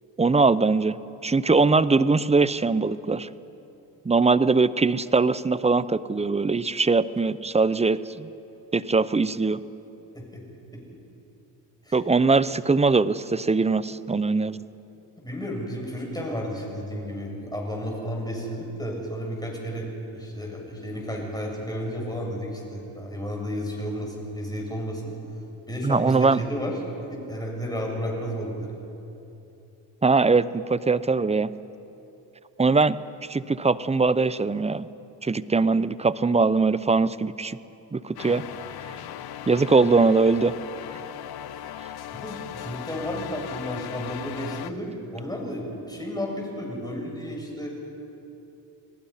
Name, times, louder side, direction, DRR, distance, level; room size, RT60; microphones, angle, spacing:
voice 1, 0.2-1.0 1.2-3.3 4.1-8.3 8.7-9.6 11.9-14.6 25.8-26.4 30.0-31.5 32.6-33.0 33.3-34.9 35.2-37.6 37.9-38.4 39.5-40.5, right 4 dB, 15° right, 16 dB, 0.6 m, -21 dB
voice 2, 15.2-25.1 25.7-26.8 27.1-28.7 41.5-41.6 42.2-47.7, equal, 10° left, -1 dB, 7.4 m, -32 dB
sound 1, 38.2-44.7, left 10 dB, 60° left, 0.9 m, -38 dB
29.0 x 18.5 x 5.8 m, 2.9 s
supercardioid pair, 75°, 43 cm